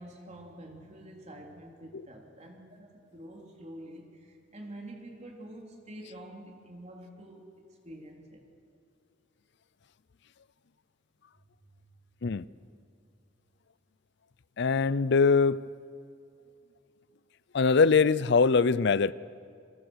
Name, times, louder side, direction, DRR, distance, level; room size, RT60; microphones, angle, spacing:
voice 1, 0.0-7.5 7.8-8.4 11.7-11.9, right 1 dB, 35° right, 1 dB, 3.5 m, -47 dB
voice 2, 14.6-15.6 17.5-19.1, left 5 dB, 65° left, 18 dB, 0.5 m, -22 dB
29.5 x 22.0 x 6.4 m, 2.4 s
head